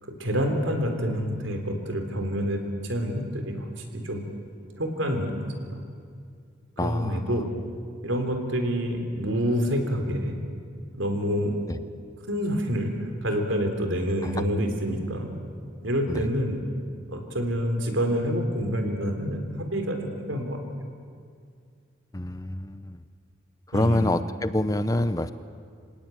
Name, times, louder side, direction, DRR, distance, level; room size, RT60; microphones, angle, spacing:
voice 1, 0.0-4.3 4.8-5.8 6.8-7.5 8.0-10.4 10.9-11.7 12.3-15.3 15.8-16.6 17.1-19.4 19.7-20.6 23.7-24.1, equal, 80° right, 5 dB, 3.6 m, -27 dB
voice 2, 6.8-7.4 11.7-11.8 14.2-14.4 16.1-16.3 22.1-23.0 23.7-25.3, left 1 dB, 20° left, 12 dB, 0.7 m, -27 dB
26.5 x 18.0 x 9.2 m, 2.2 s
head